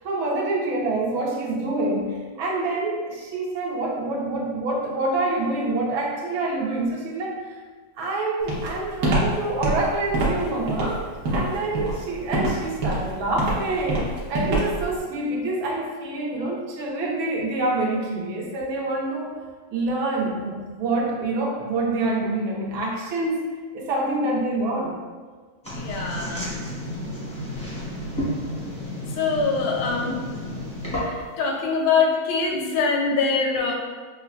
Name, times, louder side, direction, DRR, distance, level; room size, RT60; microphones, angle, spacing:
voice 1, 0.0-7.5 8.0-19.4 19.7-23.5 23.7-25.0 26.2-26.6 33.5-33.7, right 2 dB, 80° right, -2 dB, 1.5 m, -26 dB
Walk footsteps, 8.5-14.9, right 1 dB, 60° right, 1.0 m, -25 dB
sound 1, 25.6-31.4, equal, 10° left, 0.4 m, -31 dB
voice 2, 25.8-26.5 29.2-30.2 31.1-33.7, left 4 dB, 85° left, 0 dB, 1.5 m, -23 dB
5.5 x 2.2 x 2.3 m, 1.5 s
omnidirectional pair, 2.2 m